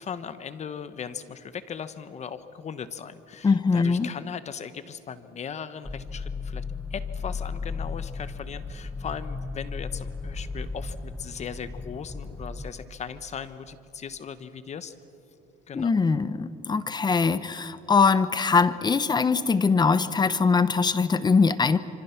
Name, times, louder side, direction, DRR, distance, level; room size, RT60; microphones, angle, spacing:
voice 1, 0.0-6.6 6.9-14.9 15.7-15.9, left 7 dB, 40° left, 12 dB, 1.2 m, -38 dB
voice 2, 3.4-4.1 15.7-21.8, left 5 dB, 25° left, 14 dB, 0.9 m, -22 dB
sound 1, 5.8-12.7, left 4 dB, 10° left, 1.3 m, -35 dB
26.0 x 25.5 x 6.0 m, 2.8 s
cardioid pair, 110°, 17 cm